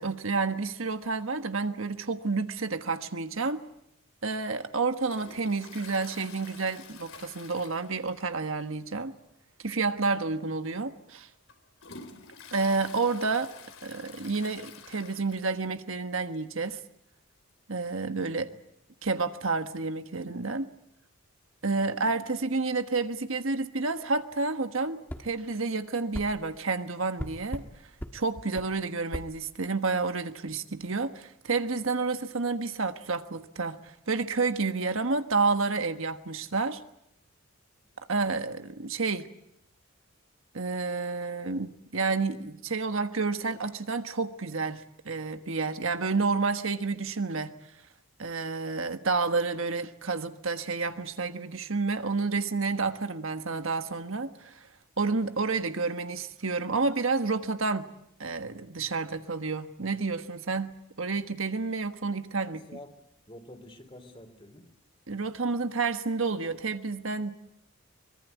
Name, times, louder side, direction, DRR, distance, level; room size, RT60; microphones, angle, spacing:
voice 1, 0.0-3.6 4.2-9.1 9.6-11.3 12.5-13.5 13.8-16.8 17.7-18.5 19.0-20.7 21.6-27.6 28.1-36.8 38.1-39.3 40.5-47.5 48.2-54.7 55.0-57.9 58.2-62.6 65.1-67.3, right 4 dB, 70° right, 8 dB, 1.4 m, -30 dB
Toilet flush, 5.0-8.4 8.7-8.8 9.2-9.3 10.2-10.3 10.8-15.8 16.1-16.2 16.3-16.4 17.5-17.6, left 5 dB, 70° left, 3.5 m, -49 dB
voice 2, 11.9-12.3 18.4-18.5 21.7-22.1 37.8-38.1 62.4-62.9 63.3-64.7, left 1 dB, 25° left, 7 dB, 3.3 m, -49 dB
sound 1, 25.1-25.3 26.1-26.3 27.2-27.7 28.0-28.2 28.6-28.7 29.1-29.3, equal, 10° left, 1.6 m, -36 dB
24.0 x 22.5 x 8.2 m, 0.78 s
head